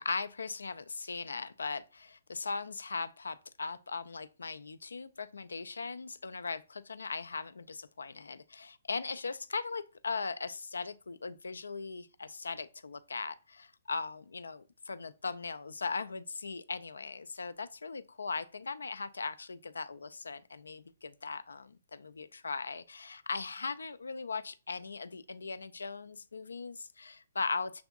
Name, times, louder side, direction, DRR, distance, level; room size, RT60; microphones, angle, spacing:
voice 1, 0.0-27.8, left 4 dB, 75° left, 0.4 m, -39 dB
5.9 x 3.4 x 2.3 m
figure-of-eight pair, 125°, 0 cm